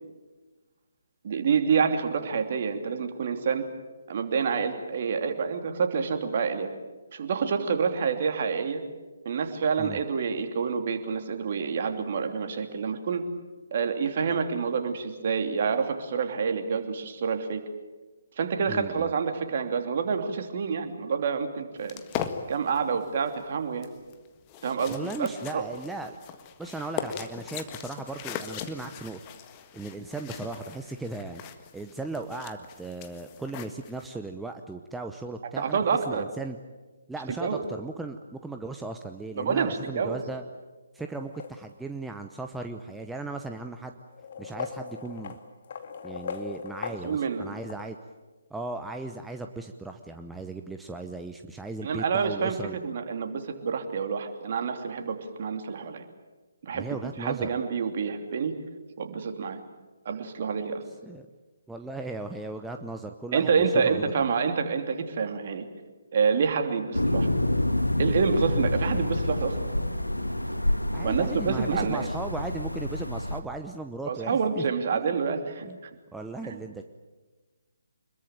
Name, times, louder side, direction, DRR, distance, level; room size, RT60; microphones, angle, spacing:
voice 1, 1.2-3.6 4.1-6.7 7.1-8.8 9.2-13.2 13.7-17.6 18.4-22.0 22.5-23.9 24.6-25.6 35.6-36.3 37.4-37.6 39.4-40.2 47.0-47.4 51.8-56.0 56.6-56.9 57.2-58.5 59.0-59.6 60.0-60.8 63.3-65.7 66.1-67.3 68.0-69.7 71.0-72.1 74.1-75.9 76.4-76.6, right 6 dB, 45° right, 6 dB, 2.9 m, -28 dB
voice 2, 18.7-19.1 24.9-26.2 26.6-29.2 29.7-31.4 31.7-35.8 36.1-36.6 37.1-40.4 40.9-44.0 44.4-45.4 46.0-48.0 48.5-52.8 56.7-57.5 61.0-61.3 61.7-63.5 63.8-64.3 70.9-74.6 74.9-75.2 75.7-75.8 76.1-76.8, right 3 dB, 5° right, 5 dB, 0.9 m, -37 dB
sound 1, 21.8-34.1, left 9 dB, 25° left, 1.7 m, -40 dB
sound 2, 41.0-42.0 43.0-43.1 44.1-47.9, left 6 dB, 45° left, 2.2 m, -39 dB
sound 3, 66.9-73.4, left 1 dB, 85° left, 1.8 m, -28 dB
26.0 x 22.0 x 9.0 m, 1.3 s
figure-of-eight pair, 140°, 0 cm